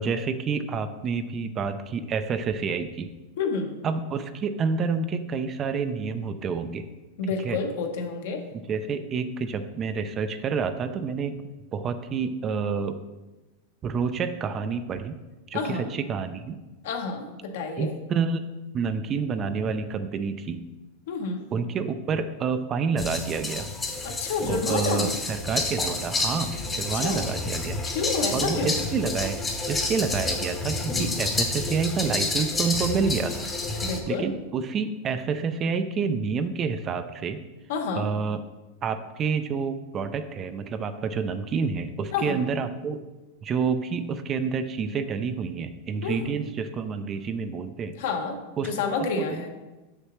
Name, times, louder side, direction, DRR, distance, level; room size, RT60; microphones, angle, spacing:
voice 1, 0.0-3.1 3.8-6.9 7.4-7.6 8.7-11.3 11.7-13.0 13.8-15.2 15.5-16.6 17.8-18.4 18.7-20.7 21.5-23.7 24.5-27.8 28.3-29.4 29.7-33.5 34.1-37.4 37.9-38.4 38.8-43.0 43.4-47.9 48.6-49.5, right 5 dB, 25° right, 10 dB, 0.4 m, -28 dB
voice 2, 3.4-3.7 7.2-8.4 15.5-15.9 16.8-17.9 21.1-21.5 24.0-25.1 26.9-27.3 27.8-28.8 33.8-34.3 37.7-38.1 42.1-42.4 46.0-46.4 47.9-48.4 48.6-49.5, left 4 dB, 70° left, 3 dB, 1.1 m, -29 dB
sound 1, 23.0-34.0, left 2 dB, 15° left, 0.8 m, -29 dB
7.3 x 6.5 x 3.1 m, 1.1 s
supercardioid pair, 145°, 0 cm